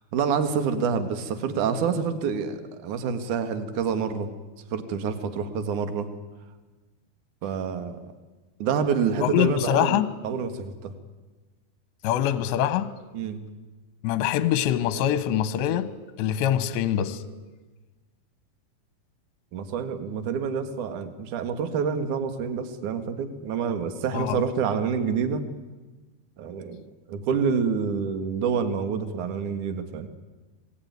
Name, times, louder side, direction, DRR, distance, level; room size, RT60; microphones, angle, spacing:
voice 1, 0.1-4.3 4.7-6.1 7.4-8.0 8.6-10.9 13.1-13.4 19.5-25.4 26.4-26.8 27.1-30.1, right 6 dB, 60° right, 9 dB, 2.3 m, -27 dB
voice 2, 9.2-10.1 12.0-12.9 14.0-15.9 16.2-17.2 24.1-24.4, left 11 dB, 75° left, 13 dB, 3.0 m, -24 dB
26.0 x 19.5 x 9.5 m, 1.2 s
omnidirectional pair, 5.8 m